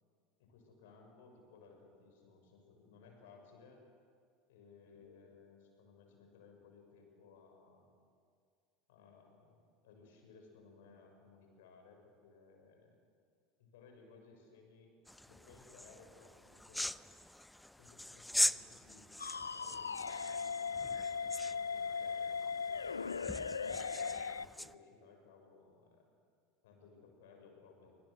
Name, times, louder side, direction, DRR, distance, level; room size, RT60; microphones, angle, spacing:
voice 1, 0.4-3.8 4.5-7.9 8.9-13.0 13.6-14.9 15.3-16.9 17.8-19.1 19.5-22.9 23.5-26.0 26.6-28.0, left 4 dB, 65° left, 3 dB, 6.4 m, -60 dB
sound 1, 15.0-24.7, left 1 dB, 5° left, 0.5 m, -41 dB
sound 2, 19.2-24.4, left 5 dB, 80° left, 0.6 m, -38 dB
27.5 x 25.5 x 6.4 m, 2.1 s
figure-of-eight pair, 75°, 0 cm